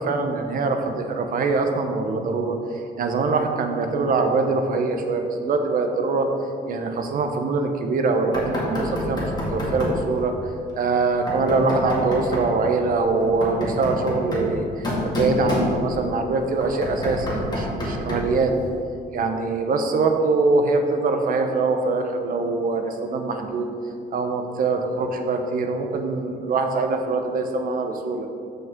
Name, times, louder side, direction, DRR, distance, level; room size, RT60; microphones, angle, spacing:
voice 1, 0.0-2.6 3.0-6.3 6.7-10.3 10.8-18.5 19.1-23.7 24.1-28.3, right 3 dB, 55° right, 5 dB, 0.9 m, -23 dB
Knock, 8.3-10.1 11.3-12.5 13.2-16.1 16.6-18.4, left 1 dB, 25° left, 2.1 m, -28 dB
13.5 x 5.5 x 3.7 m, 2.5 s
cardioid pair, 140°, 17 cm